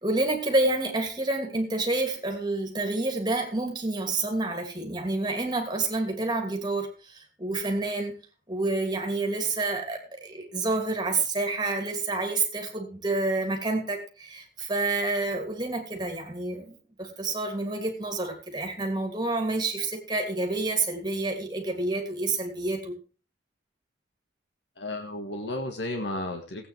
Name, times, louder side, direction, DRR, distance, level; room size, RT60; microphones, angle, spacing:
voice 1, 0.0-8.2 8.5-23.0, right 2 dB, 25° right, 2 dB, 2.8 m, -28 dB
voice 2, 24.8-26.7, left 1 dB, 75° left, 3 dB, 1.7 m, -33 dB
17.5 x 8.9 x 3.4 m, 0.33 s
head